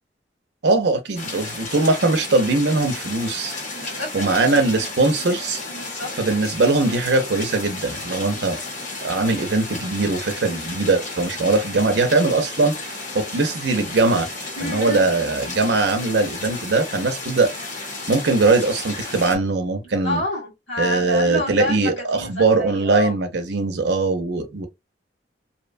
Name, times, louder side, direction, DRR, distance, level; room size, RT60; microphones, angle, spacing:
voice 1, 0.6-3.6 4.1-5.6 6.2-8.6 9.0-14.3 14.6-17.5 18.1-20.2 20.8-24.7, right 3 dB, 70° right, 0.6 m, -21 dB
sound 1, 1.1-19.4, left 2 dB, 45° left, 0.8 m, -33 dB
voice 2, 3.7-4.8 5.7-6.1 14.6-15.1 20.0-23.2, equal, 90° left, 1.6 m, -29 dB
2.7 x 2.1 x 2.5 m
head